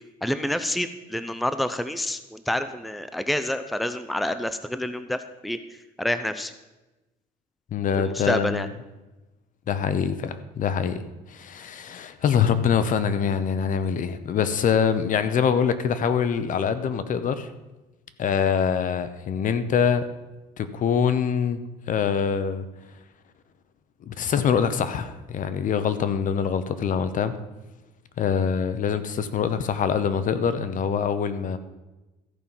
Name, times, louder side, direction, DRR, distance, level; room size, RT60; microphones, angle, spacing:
voice 1, 0.2-5.6 6.0-6.5 8.0-8.7, left 1 dB, ahead, 11 dB, 0.6 m, -28 dB
voice 2, 7.7-8.7 9.7-11.0 11.3-17.5 18.2-20.1 20.6-22.7 24.1-27.4 28.2-31.6, left 7 dB, 50° left, 12 dB, 0.9 m, -24 dB
14.0 x 5.6 x 7.2 m, 1.1 s
cardioid pair, 110°, 17 cm